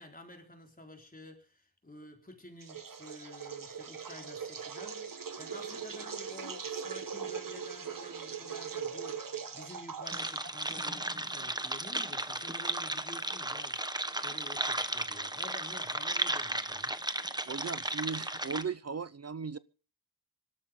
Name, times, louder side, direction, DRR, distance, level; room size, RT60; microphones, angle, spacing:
voice 1, 0.0-13.8 14.1-17.0, left 1 dB, 25° left, 4.3 m, -50 dB
sound 1, 2.6-11.1, right 6 dB, 60° right, 1.5 m, -41 dB
sound 2, 10.1-18.6, right 1 dB, 10° right, 1.2 m, -35 dB
voice 2, 17.3-19.6, right 5 dB, 40° right, 0.6 m, -37 dB
25.0 x 13.0 x 3.7 m
wide cardioid pair, 110°, 37 cm